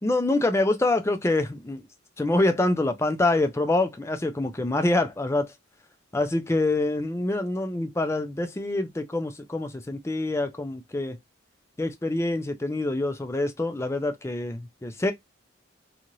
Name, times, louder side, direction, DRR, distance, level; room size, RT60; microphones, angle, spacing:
voice 1, 0.0-1.8 2.2-5.5 6.1-11.2 11.8-15.1, left 2 dB, 15° left, 0.3 m, -26 dB
2.6 x 2.4 x 2.9 m
head